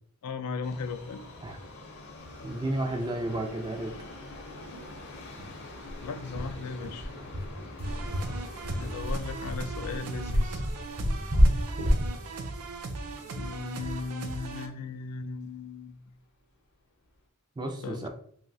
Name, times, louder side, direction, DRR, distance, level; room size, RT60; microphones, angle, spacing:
voice 1, 0.2-1.2 6.0-7.1 8.8-10.6 13.4-16.0 17.8-18.1, left 4 dB, 85° left, 9 dB, 0.3 m, -37 dB
Subway metro underground, 0.6-14.7 15.0-15.1 16.0-16.1 16.4-16.5 17.1-17.2, left 2 dB, 50° left, 0.7 m, -47 dB
voice 2, 2.4-3.9 17.6-18.1, right 1 dB, 20° right, 4 dB, 0.3 m, -32 dB
sound 1, 3.5-3.6 3.9-4.0 4.3-4.5 4.8-4.9 5.4-13.8, equal, 40° right, 0.7 m, -28 dB
sound 2, 7.8-14.7, right 3 dB, 90° right, 0.4 m, -38 dB
2.7 x 2.1 x 4.0 m, 0.62 s
head